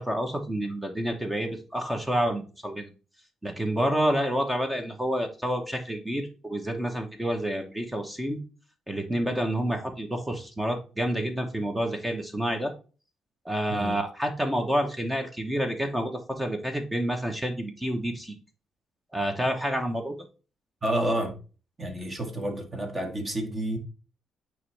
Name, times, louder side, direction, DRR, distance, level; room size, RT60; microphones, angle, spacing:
voice 1, 0.0-2.9 3.4-8.4 8.9-12.7 13.4-18.3 19.1-20.1, right 1 dB, 10° right, 1.0 m, -29 dB
voice 2, 20.8-21.3 21.8-23.8, right 1 dB, 30° right, 1.8 m, -29 dB
9.2 x 3.1 x 3.3 m
cardioid pair, 90°, 0 cm